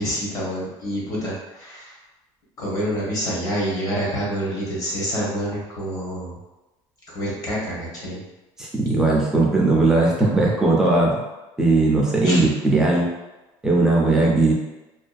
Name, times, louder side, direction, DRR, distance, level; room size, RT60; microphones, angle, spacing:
voice 1, 0.0-1.9 2.6-6.3 7.1-8.2 12.2-12.4, equal, 35° left, -6 dB, 0.8 m, -27 dB
voice 2, 8.6-11.2 11.6-13.1 13.6-14.5, right 2 dB, 5° right, -4 dB, 0.4 m, -18 dB
2.5 x 2.2 x 2.4 m, 1.0 s
cardioid pair, 160°, 11 cm